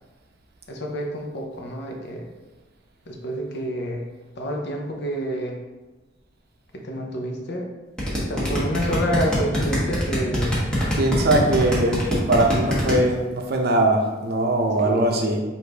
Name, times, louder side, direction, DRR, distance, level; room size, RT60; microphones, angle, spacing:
voice 1, 0.7-2.3 3.1-4.1 4.4-5.6 6.7-7.7 8.2-10.7 14.8-15.4, equal, 60° left, 1 dB, 0.7 m, -28 dB
sound 1, 8.0-12.9, equal, 5° left, 1.1 m, -23 dB
voice 2, 11.0-15.4, right 1 dB, 55° right, 2 dB, 0.6 m, -21 dB
5.0 x 2.6 x 3.4 m, 1.2 s
head